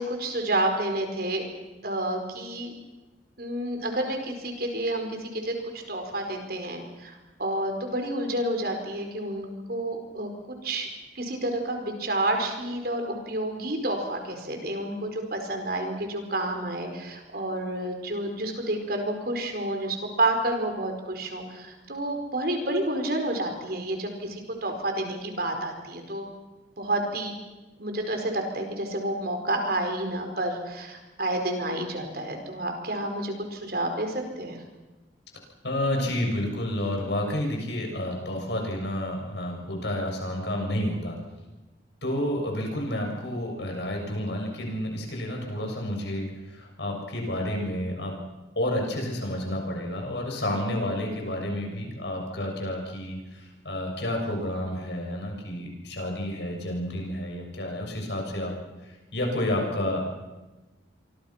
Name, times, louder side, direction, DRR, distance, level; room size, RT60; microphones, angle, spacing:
voice 1, 0.0-1.5 1.8-2.7 3.4-10.9 11.1-26.3 26.8-27.4 27.8-34.6, right 1 dB, 55° right, 4 dB, 4.8 m, -30 dB
voice 2, 35.6-41.2 42.0-48.1 48.6-58.5 58.8-60.2, left 1 dB, 65° left, 1 dB, 7.0 m, -30 dB
28.5 x 24.0 x 5.9 m, 1.1 s
head